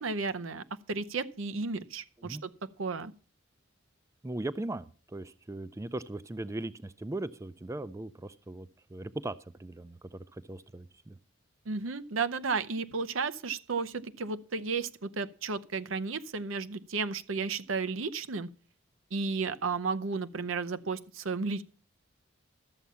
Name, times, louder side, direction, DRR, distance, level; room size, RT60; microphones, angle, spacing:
voice 1, 0.0-2.5 2.8-3.1 11.7-18.5 19.1-21.6, right 4 dB, 90° right, 13 dB, 0.8 m, -33 dB
voice 2, 4.2-11.2, right 2 dB, 15° right, 15 dB, 0.4 m, -39 dB
13.0 x 7.3 x 5.6 m, 0.38 s
head